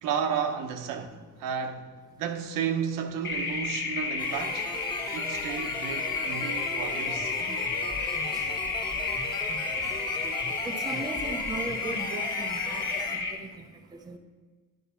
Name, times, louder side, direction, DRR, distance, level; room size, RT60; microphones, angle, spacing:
voice 1, 0.0-4.7 5.1-7.3, right 7 dB, 80° right, 1.0 m, -32 dB
sound 1, 3.2-13.3, left 4 dB, 35° left, 1.1 m, -31 dB
sound 2, 4.2-13.2, left 2 dB, 15° left, 1.2 m, -39 dB
voice 2, 10.6-13.6 14.0-14.2, right 3 dB, 10° right, 0.5 m, -38 dB
11.0 x 5.4 x 5.7 m
cardioid pair, 155°, 31 cm